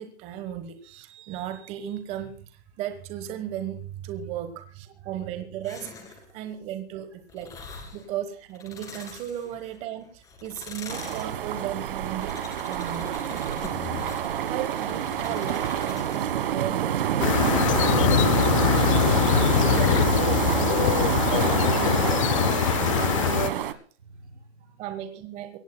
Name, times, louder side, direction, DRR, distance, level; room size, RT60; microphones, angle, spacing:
voice 1, 0.0-7.5 7.9-12.4 12.7-13.2 14.5-17.1 17.7-18.6 18.8-20.9 21.3-22.3 22.8-23.7 24.8-25.6, right 10 dB, 20° right, 8 dB, 1.2 m, -36 dB
sound 1, 5.6-6.3 7.3-8.1 8.5-9.8 10.2-16.5 17.0-22.7, left 5 dB, 10° left, 2.0 m, -41 dB
sound 2, 10.9-23.7, right 10 dB, 55° right, 1.4 m, -27 dB
sound 3, 17.2-23.5, left 11 dB, 30° left, 0.6 m, -23 dB
voice 2, 24.0-24.8, right 4 dB, 90° right, 2 dB, 5.1 m, -53 dB
24.0 x 17.0 x 2.2 m, 0.43 s
hypercardioid pair, 160°, 33 cm